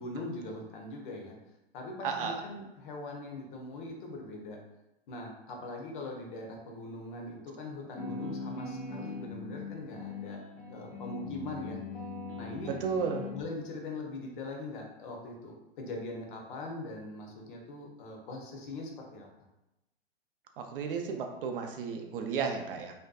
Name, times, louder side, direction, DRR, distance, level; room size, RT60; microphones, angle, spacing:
voice 1, 0.0-1.4 1.7-4.6 5.1-10.4 10.7-11.8 12.4-12.8 13.3-19.3, left 2 dB, 55° left, 1 dB, 0.7 m, -41 dB
voice 2, 2.0-2.4 12.8-13.2 20.6-22.9, right 6 dB, 60° right, 4 dB, 0.5 m, -33 dB
sound 1, 8.0-13.4, left 4 dB, 25° left, 0.4 m, -40 dB
2.6 x 2.2 x 2.3 m, 0.93 s
hypercardioid pair, 115°, 31 cm